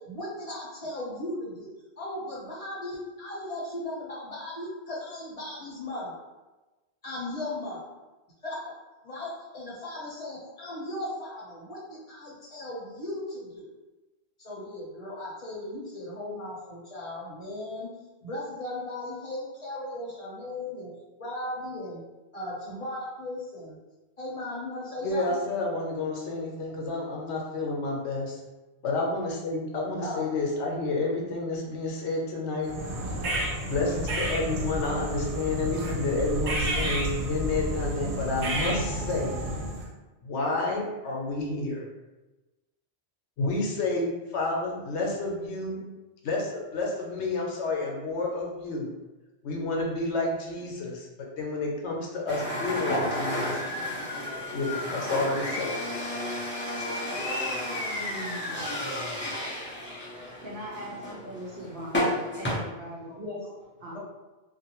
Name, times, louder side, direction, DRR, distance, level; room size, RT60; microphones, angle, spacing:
voice 1, 0.0-1.7 2.0-6.2 7.0-7.9 8.4-8.7 9.0-13.7 14.4-17.9 18.2-20.9 21.2-22.0 22.3-23.8 24.2-25.4 30.0-30.3 63.0-63.5 63.9-64.0, left 1 dB, 35° left, -6 dB, 0.7 m, -37 dB
voice 2, 25.0-28.4 28.8-32.7 33.6-39.4 40.2-41.9 43.4-45.8 46.2-48.9 49.4-51.1 51.4-53.6 54.5-55.7 56.8-56.9 57.9-58.0, left 2 dB, 85° left, -1 dB, 0.9 m, -30 dB
sound 1, 32.6-39.9, right 1 dB, 90° right, 0.9 m, -30 dB
sound 2, 52.3-62.6, left 1 dB, 15° left, 0.4 m, -32 dB
voice 3, 60.3-63.1 63.8-64.0, equal, 60° right, -3 dB, 0.7 m, -40 dB
2.5 x 2.2 x 2.9 m, 1.1 s
omnidirectional pair, 1.1 m